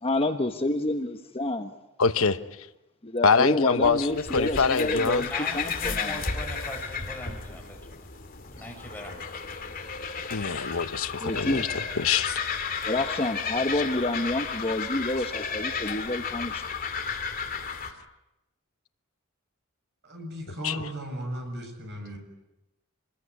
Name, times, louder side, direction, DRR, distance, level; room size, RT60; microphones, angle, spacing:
voice 1, 0.0-1.7 3.0-6.2 8.8-9.7 11.2-11.7 12.8-16.6, left 2 dB, 25° left, 1.2 m, -29 dB
voice 2, 2.0-2.4 3.2-4.0 4.3-5.2 10.3-11.7 12.0-12.4 20.6-20.9, left 5 dB, 75° left, 1.0 m, -24 dB
sound 1, 3.8-17.9, left 5 dB, 40° left, 2.5 m, -33 dB
voice 3, 5.0-7.8 8.5-9.2, left 1 dB, 10° left, 6.4 m, -40 dB
voice 4, 20.0-22.2, equal, 55° right, 7.7 m, -36 dB
27.5 x 21.0 x 9.8 m
head